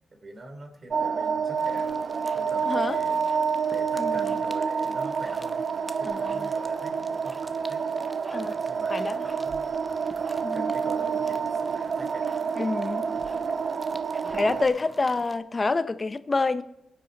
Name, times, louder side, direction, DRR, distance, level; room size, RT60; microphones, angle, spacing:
voice 1, 0.1-3.3 3.7-5.7 5.9-7.9 8.3-8.9 9.2-12.4 13.0-13.2 13.4-13.6 14.4-14.8, right 1 dB, 40° right, 3.1 m, -45 dB
sound 1, 0.9-14.6, right 6 dB, 60° right, 0.5 m, -28 dB
sound 2, 1.6-15.4, equal, 5° right, 0.9 m, -47 dB
voice 2, 2.7-3.0 4.0-4.1 6.1-6.5 8.3-8.6 8.9-9.2 10.4-10.7 12.6-13.1 14.3-16.6, left 3 dB, 30° left, 0.8 m, -27 dB
21.5 x 8.5 x 4.0 m
cardioid pair, 80°, 0 cm